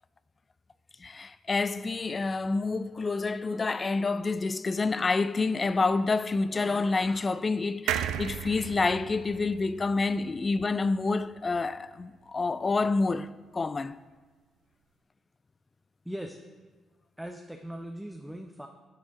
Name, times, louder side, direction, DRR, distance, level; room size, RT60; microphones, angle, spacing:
voice 1, 1.0-13.3 13.5-14.0, left 3 dB, 35° left, 0.4 m, -28 dB
sound 1, 7.9-11.3 11.7-11.8 12.0-12.1, right 10 dB, 80° right, 0.3 m, -35 dB
voice 2, 16.0-16.4 17.2-18.7, equal, 5° right, 0.7 m, -39 dB
9.7 x 6.3 x 3.7 m
supercardioid pair, 50°, 0 cm